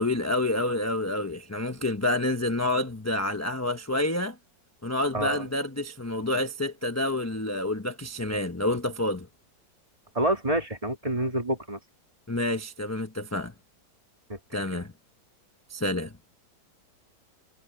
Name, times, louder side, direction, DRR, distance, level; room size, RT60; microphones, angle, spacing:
voice 1, 0.0-4.4 4.8-9.3 12.3-13.5 14.5-14.9 15.7-16.1, left 1 dB, 15° left, 0.7 m, -28 dB
voice 2, 5.1-5.5 10.1-11.8 14.3-14.4 14.7-14.8, right 1 dB, 20° right, 1.8 m, -28 dB
omnidirectional pair, 2.0 m